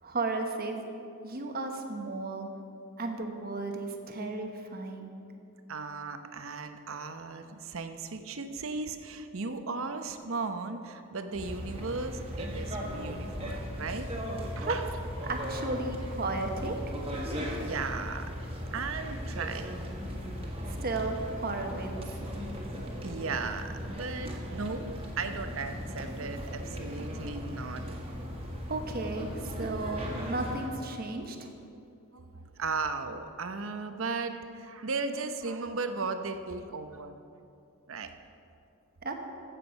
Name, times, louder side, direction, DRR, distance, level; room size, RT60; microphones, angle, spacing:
voice 1, 0.0-0.9 1.2-2.5 3.0-5.1 14.6-14.8 15.2-17.0 20.7-22.0 28.7-31.5 39.0-39.1, right 3 dB, 45° right, 4 dB, 1.1 m, -34 dB
voice 2, 5.7-14.9 17.6-18.3 18.7-19.8 23.0-28.0 29.6-29.7 31.7-31.8 32.1-37.2 37.9-38.1, right 4 dB, 65° right, 8 dB, 0.8 m, -36 dB
sound 1, 11.3-30.7, equal, 25° right, 1.6 m, -37 dB
15.0 x 7.5 x 5.2 m, 2.6 s
head